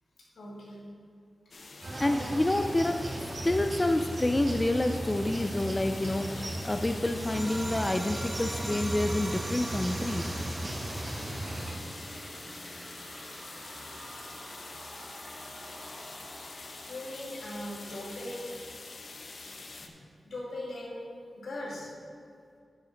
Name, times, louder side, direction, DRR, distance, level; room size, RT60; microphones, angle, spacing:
voice 1, 0.3-0.9 1.7-1.8 13.5-14.2 14.7-14.8 15.7-15.8 16.5-18.8 19.8-21.1 21.3-21.9, left 1 dB, 90° left, -4 dB, 2.3 m, -41 dB
sound 1, 1.5-19.9, left 3 dB, 55° left, 0.8 m, -46 dB
sound 2, 1.8-11.7, right 1 dB, 40° right, 1.5 m, -36 dB
voice 2, 2.0-3.0 3.4-10.3, left 1 dB, 20° left, 7 dB, 0.4 m, -28 dB
sound 3, 7.0-18.0, right 1 dB, 25° right, 0.7 m, -43 dB
9.2 x 6.8 x 5.0 m, 2.3 s
wide cardioid pair, 105°, 0 cm